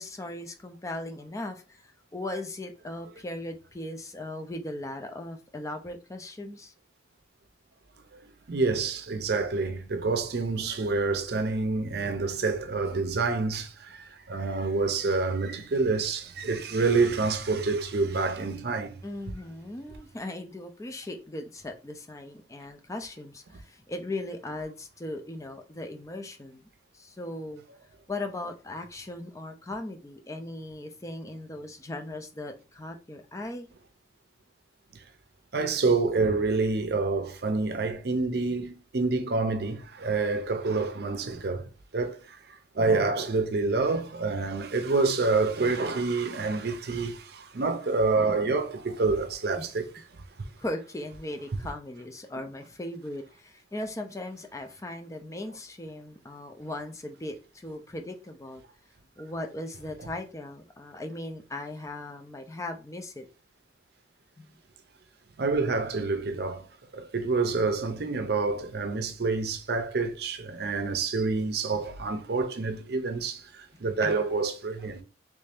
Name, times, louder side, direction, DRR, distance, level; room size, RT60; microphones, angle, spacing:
voice 1, 0.0-6.7 19.0-26.7 26.9-27.6 28.1-33.7 49.6-49.7 50.6-58.6 59.2-63.3 64.4-64.5 74.0-74.4, left 1 dB, 15° left, 0.4 m, -38 dB
voice 2, 8.5-19.0 35.5-41.7 41.9-49.8 65.4-66.7 66.9-75.0, right 3 dB, 60° right, 0.6 m, -27 dB
3.2 x 2.6 x 3.4 m
head